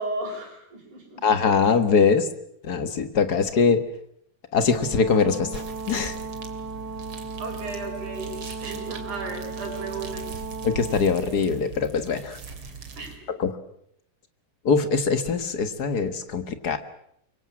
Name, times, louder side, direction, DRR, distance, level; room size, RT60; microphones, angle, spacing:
voice 1, 0.0-1.2 7.4-10.2 13.0-13.3, right 3 dB, 70° right, 4 dB, 6.7 m, -35 dB
voice 2, 1.2-2.3 2.6-3.8 4.5-6.2 10.6-12.4 13.4-13.5 14.6-16.8, left 5 dB, 45° left, 10 dB, 1.4 m, -22 dB
Brass instrument, 4.6-11.0, right 3 dB, 20° left, 7.5 m, -36 dB
sound 1, 5.5-13.2, right 5 dB, 45° right, 3.3 m, -40 dB
24.5 x 23.0 x 7.5 m, 0.72 s
omnidirectional pair, 3.6 m